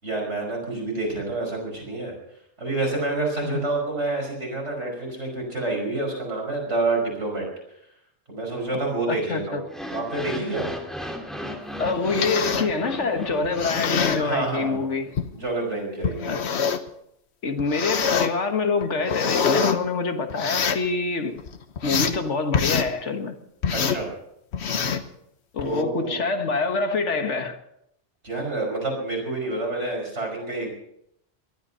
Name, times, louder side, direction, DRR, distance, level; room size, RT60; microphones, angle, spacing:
voice 1, 0.0-2.1 2.6-7.5 8.3-9.6 9.9-10.7 14.2-14.8 15.3-16.4 23.7-24.1 25.6-26.2 28.2-30.7, right 2 dB, 80° right, 5.8 m, -28 dB
voice 2, 9.1-9.6 11.8-15.1 16.3-16.4 17.4-21.4 21.8-23.4 25.5-27.6, left 4 dB, 85° left, 1.8 m, -26 dB
sound 1, 9.6-14.8, equal, ahead, 2.2 m, -36 dB
sound 2, 11.9-12.7 13.4-14.2 15.2-15.3 16.0-16.9 17.6-18.3 18.8-19.8 20.3-20.9 21.4-22.2 22.5-22.9 23.6-24.0 24.5-25.1 25.6-25.8, left 6 dB, 70° left, 1.3 m, -25 dB
19.0 x 13.0 x 5.6 m
omnidirectional pair, 1.2 m